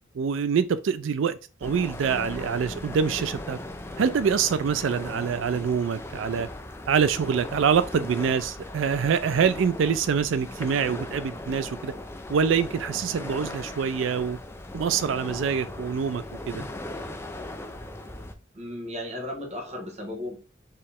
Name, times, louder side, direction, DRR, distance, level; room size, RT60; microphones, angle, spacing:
voice 1, 0.2-3.6 4.0-6.5 6.9-11.9 12.3-14.4 14.7-16.6, right 6 dB, 75° right, 0.4 m, -25 dB
sound 1, 1.6-18.3, left 1 dB, 15° left, 0.4 m, -38 dB
voice 2, 18.5-20.4, left 1 dB, 35° right, 1.3 m, -35 dB
4.5 x 3.1 x 3.5 m
head